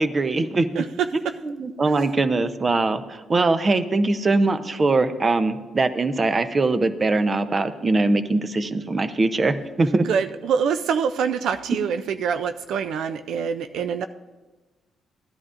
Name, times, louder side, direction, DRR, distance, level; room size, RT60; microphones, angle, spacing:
voice 1, 0.0-0.7 1.4-10.1, right 3 dB, 30° right, 11 dB, 0.6 m, -22 dB
voice 2, 0.7-1.3 1.8-1.9 10.0-14.1, right 7 dB, 75° right, 10 dB, 0.3 m, -25 dB
15.0 x 10.5 x 2.5 m, 1.2 s
cardioid pair, 90°, 0 cm